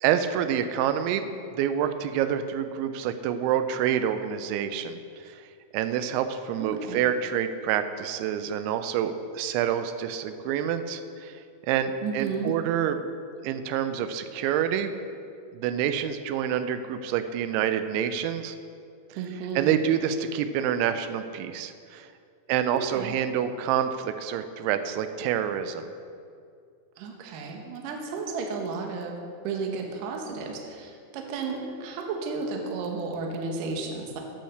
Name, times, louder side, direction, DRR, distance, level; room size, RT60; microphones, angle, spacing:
voice 1, 0.0-5.0 5.3-5.5 5.7-11.4 11.7-13.1 13.4-15.0 15.5-18.6 19.6-22.1 22.5-25.9, right 9 dB, 90° right, 9 dB, 3.0 m, -27 dB
voice 2, 6.6-7.0 12.0-12.6 19.2-19.8 22.7-23.2 27.0-29.2 29.4-34.2, right 4 dB, 70° right, 2 dB, 2.2 m, -33 dB
8.9 x 8.6 x 6.5 m, 2.4 s
omnidirectional pair, 5.2 m